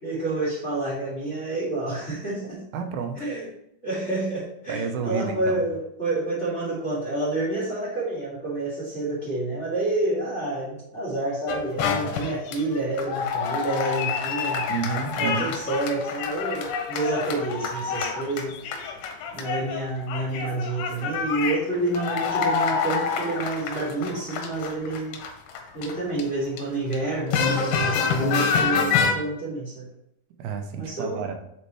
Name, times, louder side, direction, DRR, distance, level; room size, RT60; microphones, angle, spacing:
voice 1, 0.0-2.6 3.1-3.5 3.8-14.7 15.2-18.9 19.3-25.2 25.7-29.9 30.8-31.3, right 2 dB, 20° left, -8 dB, 2.2 m, -28 dB
voice 2, 2.7-3.3 4.7-5.6 14.7-15.5 30.4-31.4, right 6 dB, 85° right, 5 dB, 2.7 m, -30 dB
sound 1, 11.5-19.8 20.1-26.6 26.9-29.1, left 6 dB, 85° left, 2.7 m, -27 dB
8.2 x 4.4 x 3.1 m, 0.78 s
omnidirectional pair, 4.3 m